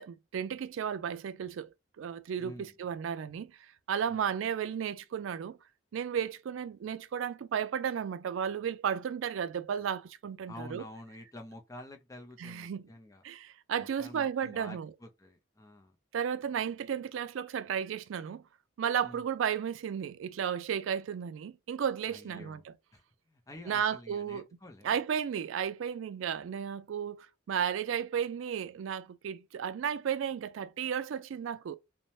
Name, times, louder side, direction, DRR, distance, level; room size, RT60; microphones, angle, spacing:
voice 1, 0.0-1.7 2.0-3.5 3.9-5.6 5.9-10.8 12.4-12.9 13.2-14.9 16.1-18.4 18.8-22.7 23.7-24.4 24.8-31.8, right 8 dB, 80° right, 0.3 m, -34 dB
voice 2, 2.4-2.7 4.1-4.3 10.5-13.2 13.8-15.9 19.0-19.3 22.1-22.6 22.9-25.0, left 1 dB, 15° left, 0.4 m, -49 dB
2.7 x 2.1 x 3.0 m
head